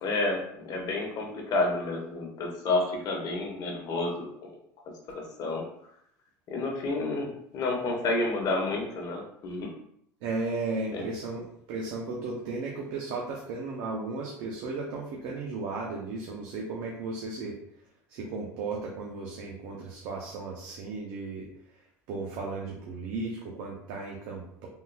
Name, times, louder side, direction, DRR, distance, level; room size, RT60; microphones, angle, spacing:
voice 1, 0.0-4.3 5.1-5.6 6.5-9.7 10.9-11.1, left 2 dB, 50° left, 1 dB, 1.0 m, -30 dB
voice 2, 10.2-11.4 11.7-17.6 18.1-21.5 22.1-24.7, right 3 dB, 65° right, -2 dB, 0.7 m, -35 dB
3.7 x 2.7 x 2.2 m, 0.71 s
supercardioid pair, 100°, 8 cm